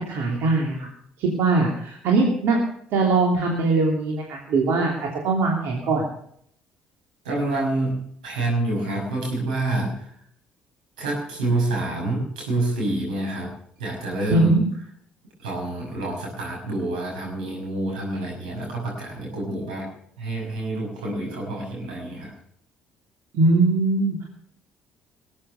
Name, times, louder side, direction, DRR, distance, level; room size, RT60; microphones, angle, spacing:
voice 1, 0.1-0.9 1.2-2.6 2.9-6.0 14.3-14.6 23.3-24.2, right 3 dB, 65° right, 0 dB, 3.0 m, -21 dB
voice 2, 7.2-10.1 11.0-13.5 13.8-14.5 15.4-19.9 20.2-22.3, right 2 dB, 85° right, -2 dB, 6.0 m, -27 dB
20.0 x 8.6 x 6.6 m, 0.65 s
hypercardioid pair, 55°, 4 cm